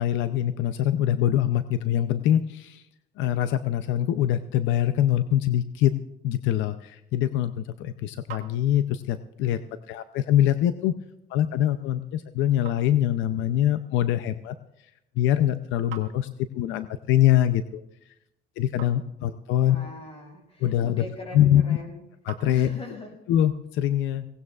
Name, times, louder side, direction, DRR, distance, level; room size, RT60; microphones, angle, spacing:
voice 1, 0.0-2.8 3.2-5.9 6.2-9.6 9.9-10.9 11.3-14.5 15.2-16.3 16.5-17.8 18.6-19.8 20.6-21.0 21.3-21.8 22.2-22.7 23.3-24.3, left 11 dB, 80° left, 11 dB, 0.6 m, -23 dB
sound 1, 8.0-23.1, right 10 dB, 70° right, 1.9 m, -52 dB
voice 2, 19.6-22.0 22.4-23.1, left 2 dB, 30° left, 0 dB, 6.6 m, -41 dB
22.0 x 18.0 x 2.4 m, 0.87 s
cardioid pair, 120°, 19 cm